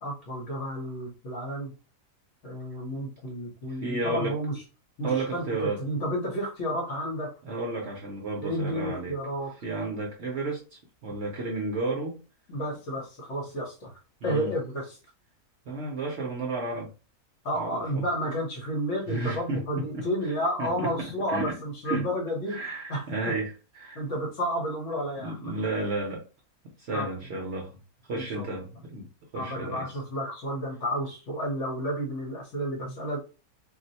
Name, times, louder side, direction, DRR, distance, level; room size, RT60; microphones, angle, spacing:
voice 1, 0.0-1.7 2.4-4.6 5.0-7.3 8.4-9.5 12.5-13.9 14.2-14.8 17.4-22.6 22.9-23.0 23.9-25.6 26.9-27.1 28.1-28.4 29.3-33.2, equal, 55° left, 0 dB, 1.2 m, -31 dB
voice 2, 3.7-4.3 5.0-5.8 7.4-9.2 9.6-12.2 14.2-14.5 15.7-16.9 17.5-18.0 19.1-20.3 20.6-21.6 21.8-22.1 22.5-24.0 25.2-26.2 26.8-27.8 28.0-29.1 29.3-29.9 32.8-32.9, right 2 dB, 55° right, 0 dB, 0.8 m, -32 dB
2.7 x 2.1 x 4.0 m, 0.33 s
omnidirectional pair, 1.6 m